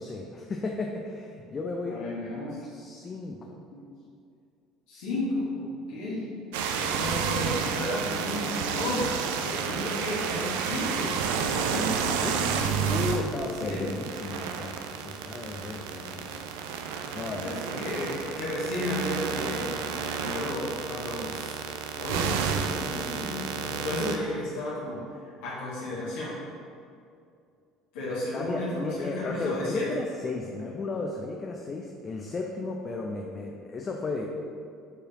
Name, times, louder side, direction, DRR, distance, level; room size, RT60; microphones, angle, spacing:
voice 1, 0.0-2.1 2.6-3.6 12.0-12.4 12.8-16.4 17.1-17.6 28.3-34.3, left 3 dB, 30° left, 1 dB, 0.5 m, -34 dB
voice 2, 1.9-2.6 4.9-6.3 6.7-9.1 9.4-12.6 13.6-14.0 17.3-21.6 22.0-26.3 27.9-29.9, left 1 dB, 65° left, -8 dB, 1.3 m, -33 dB
sound 1, 6.5-24.2, right 7 dB, 65° right, 0.4 m, -31 dB
7.0 x 4.8 x 2.9 m, 2.4 s
figure-of-eight pair, 60°, 0 cm